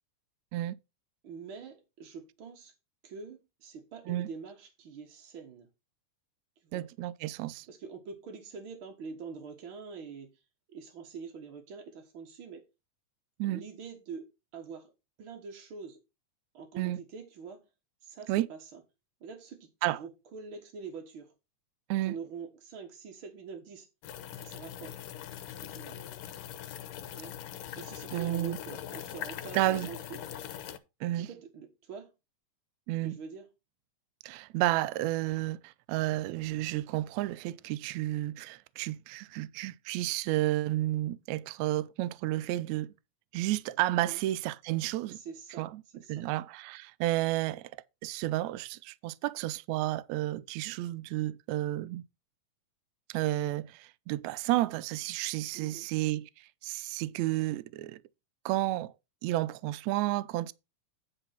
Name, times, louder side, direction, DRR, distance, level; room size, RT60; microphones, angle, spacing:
voice 1, 1.2-2.7 3.0-5.7 6.6-6.8 7.7-10.4 10.7-12.6 13.4-14.3 14.5-14.9 15.2-16.0 16.5-17.6 18.0-18.8 19.2-21.3 22.0-23.9 24.4-24.9 25.6-26.0 27.1-27.3 27.8-30.2 31.1-32.1 33.0-33.5 44.0-44.2 45.1-46.3 55.5-55.9, right 5 dB, 50° right, 1.6 m, -45 dB
voice 2, 6.7-7.7 13.4-13.6 16.8-17.0 18.3-18.5 19.8-20.0 21.9-22.1 28.1-28.6 29.5-29.9 31.0-31.3 32.9-33.2 34.2-42.9 43.3-45.2 45.6-45.8 46.1-47.7 48.0-52.0 53.1-56.3 56.6-58.0 58.4-58.9 59.2-60.5, right 16 dB, 85° right, 1.6 m, -31 dB
sound 1, 24.0-30.8, left 10 dB, 90° left, 2.5 m, -42 dB
9.9 x 4.1 x 5.7 m
omnidirectional pair, 3.8 m